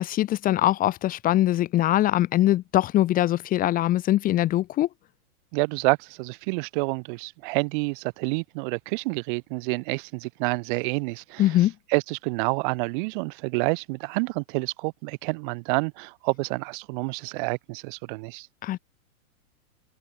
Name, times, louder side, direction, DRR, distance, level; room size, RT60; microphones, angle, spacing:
voice 1, 0.0-4.9 11.4-11.7 18.6-18.8, left 14 dB, 20° left, 1.6 m, -22 dB
voice 2, 5.5-11.5 11.9-18.5, right 30 dB, 35° right, 2.2 m, -28 dB
open air
hypercardioid pair, 160°, 43 cm